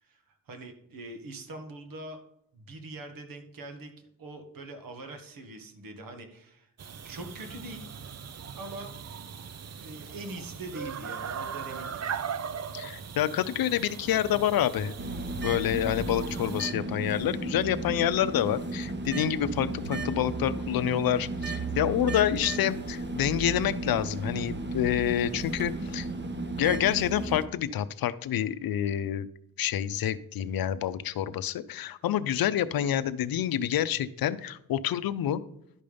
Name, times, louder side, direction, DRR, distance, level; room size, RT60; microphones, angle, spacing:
voice 1, 0.0-2.2 2.5-6.7 7.0-7.8 8.6-8.9 9.8-12.0, right 2 dB, 75° right, 5 dB, 1.7 m, -43 dB
sound 1, 6.8-16.7, right 7 dB, 50° right, 0.7 m, -39 dB
voice 2, 12.7-14.9 15.4-26.1 26.6-29.3 29.6-35.4, left 11 dB, 90° left, 14 dB, 0.6 m, -28 dB
sound 2, 15.0-27.5, right 2 dB, 30° right, 1.2 m, -34 dB
11.5 x 5.4 x 5.2 m, 0.77 s
cardioid pair, 75°, 34 cm